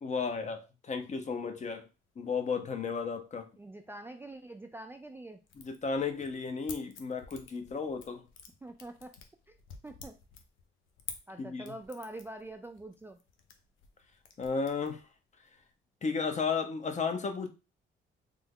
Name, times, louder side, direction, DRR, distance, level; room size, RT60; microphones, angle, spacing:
voice 1, 0.0-1.9 2.2-3.5 5.6-8.2 11.4-11.6 14.4-15.0 16.0-17.5, left 5 dB, 35° left, 0.6 m, -33 dB
sound 1, 1.1-1.3 1.8-1.9 2.1-2.9 3.2-3.4 3.8-3.9 4.3-5.0 5.4-15.7, left 6 dB, 80° left, 0.6 m, -51 dB
voice 2, 3.6-5.4 8.6-9.1 9.8-10.1 11.3-13.2, right 1 dB, 10° right, 0.3 m, -45 dB
3.3 x 2.0 x 3.6 m
cardioid pair, 90°, 20 cm